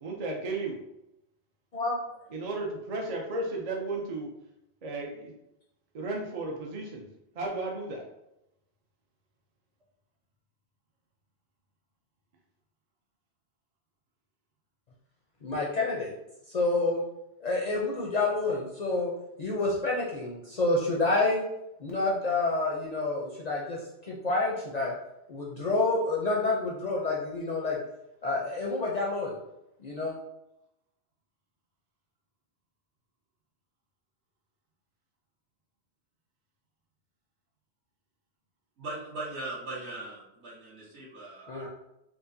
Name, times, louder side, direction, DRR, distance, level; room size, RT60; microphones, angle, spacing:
voice 1, 0.0-0.8 2.3-4.3 4.8-5.3 5.9-7.1 7.3-8.0, right 2 dB, 45° right, -1 dB, 0.5 m, -34 dB
voice 2, 15.4-16.1 16.5-17.0 17.4-19.1 19.4-21.4 21.8-24.9 25.3-27.8 28.2-29.3 29.8-30.1 41.5-41.7, left 3 dB, 50° left, -4 dB, 0.5 m, -28 dB
voice 3, 38.8-41.7, right 2 dB, 70° right, -10 dB, 1.8 m, -39 dB
4.5 x 2.1 x 2.6 m, 0.85 s
omnidirectional pair, 1.2 m